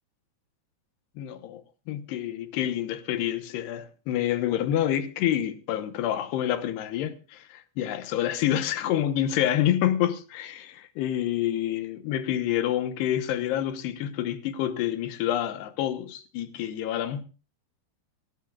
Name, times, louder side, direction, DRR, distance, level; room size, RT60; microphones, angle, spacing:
voice 1, 1.2-17.2, left 11 dB, 70° left, 2.8 m, -28 dB
23.0 x 16.5 x 2.4 m
omnidirectional pair, 5.5 m